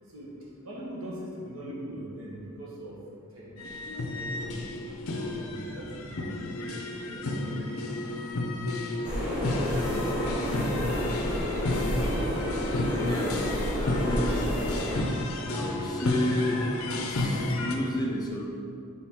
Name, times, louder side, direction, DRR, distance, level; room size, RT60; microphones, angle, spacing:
voice 1, 0.6-3.0 3.3-3.5 4.0-4.7 5.3-6.3, right 1 dB, 70° right, -4 dB, 1.3 m, -41 dB
sound 1, 3.6-17.7, left 2 dB, 70° left, 0.6 m, -32 dB
sound 2, 9.0-15.0, equal, 5° right, 1.5 m, -30 dB
voice 2, 13.0-14.6 15.5-18.5, left 1 dB, 20° left, -1 dB, 0.5 m, -32 dB
7.0 x 4.1 x 3.6 m, 2.4 s
head